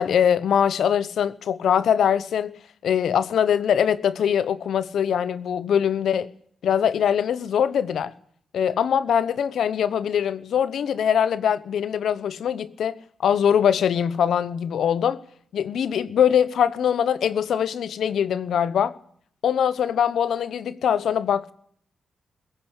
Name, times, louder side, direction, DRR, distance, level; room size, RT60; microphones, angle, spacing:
voice 1, 0.0-6.3 6.6-8.1 8.5-12.9 13.2-15.2 15.5-18.9 19.4-21.5, left 8 dB, 75° left, 1.0 m, -22 dB
20.0 x 16.0 x 8.2 m
hypercardioid pair, 40°, 0 cm